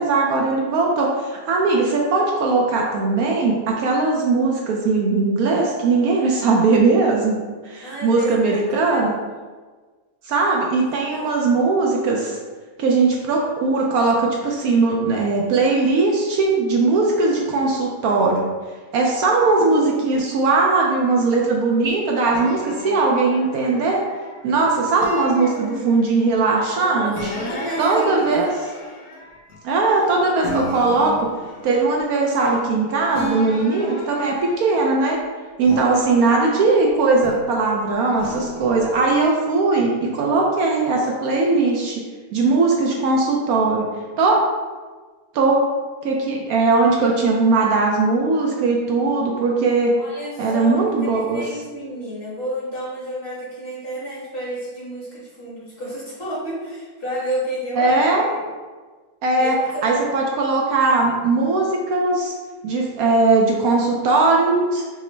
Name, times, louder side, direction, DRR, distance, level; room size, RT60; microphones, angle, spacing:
voice 1, 0.0-7.4 7.6-9.2 10.2-12.4 12.8-18.5 18.9-24.0 24.4-27.3 27.8-28.5 29.6-31.3 31.6-35.2 35.6-42.0 42.3-43.9 44.2-44.4 45.3-45.6 46.0-49.9 50.4-51.4 57.7-58.2 59.2-62.3 62.6-64.8, right 3 dB, 70° right, -1 dB, 1.0 m, -19 dB
voice 2, 7.8-8.6 8.9-9.0 10.7-11.3 26.7-28.3 50.0-50.8 51.0-58.4 59.4-59.8, right 1 dB, 40° left, -7 dB, 1.5 m, -31 dB
sound 1, 22.3-24.5 25.0-26.4 27.2-30.1 30.4-32.8 33.1-35.1 35.6-37.6 38.2-39.3, left 1 dB, 65° left, 1.1 m, -34 dB
5.9 x 2.0 x 3.2 m, 1.4 s
omnidirectional pair, 1.7 m